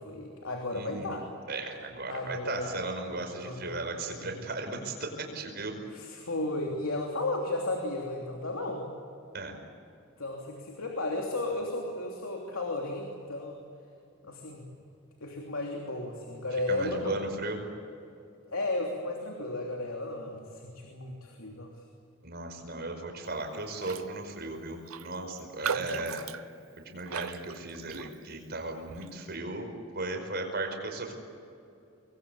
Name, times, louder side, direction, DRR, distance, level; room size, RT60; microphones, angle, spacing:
voice 1, 0.0-1.3 2.1-2.8 3.4-3.8 4.0-4.5 5.9-8.9 10.2-13.6 14.2-14.7 15.2-17.4 18.5-21.7 25.7-26.1, left 2 dB, 90° left, 1 dB, 3.1 m, -34 dB
voice 2, 0.7-1.2 1.5-5.8 9.3-9.6 16.7-17.6 22.2-26.2 26.9-31.1, right 2 dB, 50° right, 4 dB, 5.1 m, -36 dB
Raindrop, 23.8-24.1 24.4-24.5 24.9-28.4 28.9-29.2, right 7 dB, 90° right, 0.7 m, -38 dB
25.5 x 22.0 x 8.7 m, 2.6 s
head